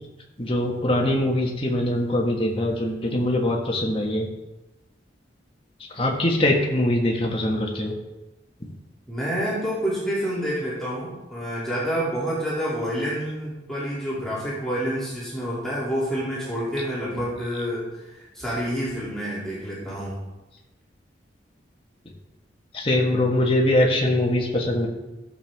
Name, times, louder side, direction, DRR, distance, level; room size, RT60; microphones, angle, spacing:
voice 1, 0.4-4.3 6.0-7.9 22.7-24.9, left 1 dB, 30° left, -1 dB, 1.5 m, -22 dB
voice 2, 9.1-20.2, equal, 5° left, -9 dB, 2.7 m, -28 dB
13.5 x 7.0 x 3.5 m, 1.0 s
head